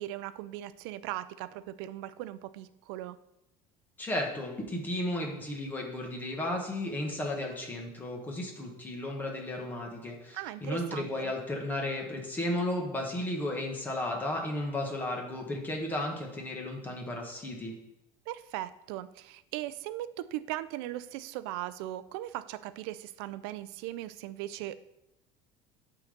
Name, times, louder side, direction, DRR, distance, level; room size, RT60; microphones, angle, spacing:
voice 1, 0.0-3.2 10.3-11.3 18.3-24.8, right 14 dB, 85° right, 14 dB, 0.5 m, -38 dB
voice 2, 4.0-17.7, left 1 dB, 15° left, 0 dB, 1.5 m, -34 dB
8.3 x 4.0 x 6.7 m, 0.85 s
cardioid pair, 160°, 12 cm